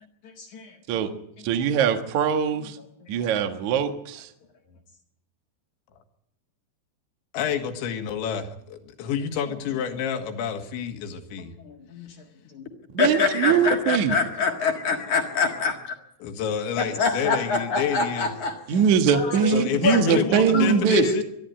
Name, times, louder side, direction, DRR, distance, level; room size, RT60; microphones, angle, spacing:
voice 1, 0.2-1.1 3.0-3.3 11.6-12.1 12.5-12.6 13.0-16.0 16.8-18.8 19.1-19.5 19.8-21.2, left 4 dB, 55° left, 2 dB, 2.4 m, -26 dB
voice 2, 1.4-2.8 3.1-4.3 12.9-14.1 18.7-21.1, right 7 dB, 70° right, 6 dB, 1.8 m, -22 dB
voice 3, 7.3-11.5 16.2-18.3 19.5-21.2, left 8 dB, 75° left, 6 dB, 3.8 m, -28 dB
22.0 x 12.5 x 9.4 m, 0.77 s
omnidirectional pair, 5.5 m